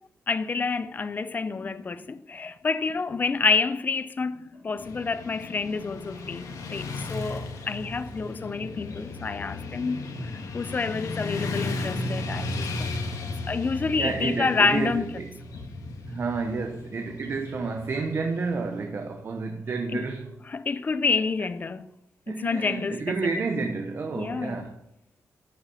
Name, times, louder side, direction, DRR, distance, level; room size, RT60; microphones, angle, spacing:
voice 1, 0.3-12.9 13.5-15.1 19.9-20.0 20.5-21.9 22.3-23.2 24.1-24.6, left 4 dB, 30° left, 0.6 m, -28 dB
Motorcycle / Traffic noise roadway noise, 4.8-18.9, left 2 dB, 85° left, 1.9 m, -35 dB
voice 2, 14.0-15.3 16.1-20.3 22.3-24.8, right 4 dB, 40° right, 1.0 m, -30 dB
11.5 x 7.1 x 6.9 m
wide cardioid pair, 150°, 6 cm